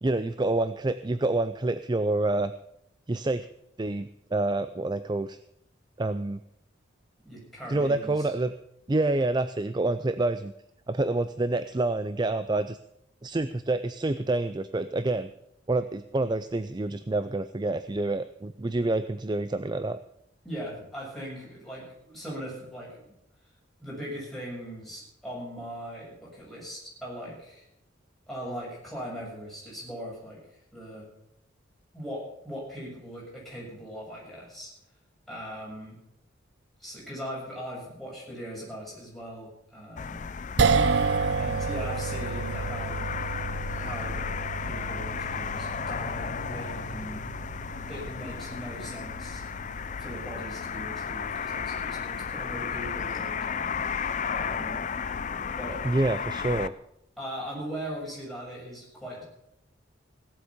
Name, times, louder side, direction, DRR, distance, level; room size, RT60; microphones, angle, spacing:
voice 1, 0.0-2.5 3.1-3.5 3.8-5.4 6.0-6.4 7.7-8.5 8.9-10.5 10.9-12.8 13.2-15.3 15.7-20.0 55.8-56.7, right 2 dB, 20° right, 11 dB, 0.4 m, -27 dB
voice 2, 7.3-8.3 20.4-23.0 23.8-27.7 28.3-31.1 31.9-34.7 35.3-36.0 36.8-40.3 41.4-43.0 43.7-44.2 44.6-47.2 47.9-49.4 50.0-53.6 54.3-54.8 55.6-55.8 57.2-59.2, equal, ahead, -6 dB, 7.1 m, -40 dB
sound 1, 40.0-56.7, left 6 dB, 40° left, 0.5 m, -34 dB
sound 2, 40.6-52.9, right 4 dB, 65° right, 0.7 m, -31 dB
17.0 x 8.1 x 7.1 m, 0.78 s
head